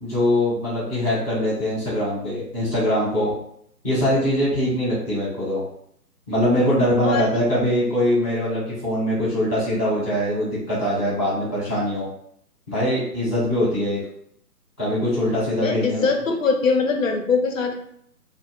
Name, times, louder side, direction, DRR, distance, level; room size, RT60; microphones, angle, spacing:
voice 1, 0.0-3.3 3.8-5.6 6.3-12.1 12.7-14.0 14.8-16.1, equal, 5° right, -11 dB, 0.7 m, -22 dB
voice 2, 7.0-7.5 15.6-17.8, left 4 dB, 55° left, 3 dB, 0.5 m, -22 dB
2.1 x 2.0 x 3.5 m, 0.69 s
figure-of-eight pair, 145°, 49 cm